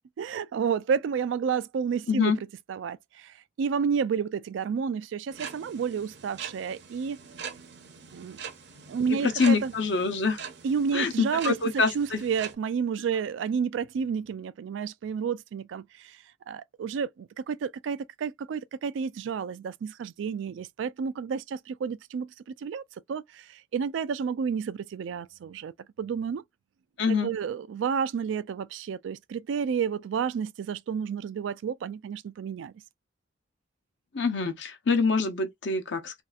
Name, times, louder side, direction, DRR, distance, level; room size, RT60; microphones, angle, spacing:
voice 1, 0.0-2.3 2.7-7.2 8.1-8.4 8.9-9.7 10.6-16.2 16.5-22.8 23.1-26.4 27.1-32.7, right 6 dB, 80° right, 0.3 m, -31 dB
voice 2, 2.1-2.4 9.2-10.4 10.9-12.2 27.0-27.3 34.1-36.2, left 4 dB, 70° left, 0.7 m, -25 dB
sound 1, 5.3-12.5, right 6 dB, 65° right, 0.7 m, -43 dB
3.1 x 2.7 x 2.3 m
head